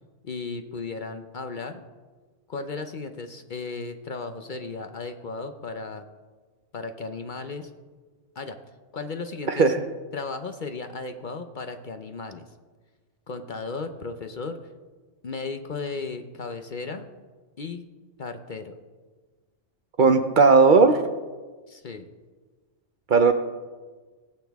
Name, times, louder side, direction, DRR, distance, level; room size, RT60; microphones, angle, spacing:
voice 1, 0.2-1.8 2.5-6.0 6.7-7.7 8.4-8.6 8.9-9.7 10.1-12.4 13.3-14.6 15.2-17.1 17.6-17.8 18.2-18.7 21.7-22.1, left 4 dB, 50° left, 7 dB, 0.7 m, -35 dB
voice 2, 20.0-21.0 23.1-23.3, right 4 dB, 50° right, 8 dB, 0.7 m, -16 dB
18.5 x 8.3 x 3.5 m, 1.4 s
omnidirectional pair, 1.2 m